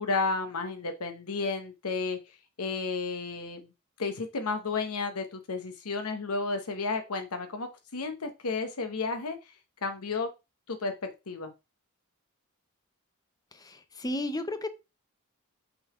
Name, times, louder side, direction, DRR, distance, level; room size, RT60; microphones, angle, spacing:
voice 1, 0.0-2.2 2.6-3.7 4.0-9.4 9.8-10.3 10.7-11.5, left 4 dB, 80° left, 1.0 m, -32 dB
voice 2, 13.5-14.7, left 1 dB, 15° left, 0.6 m, -33 dB
6.0 x 3.9 x 4.9 m
head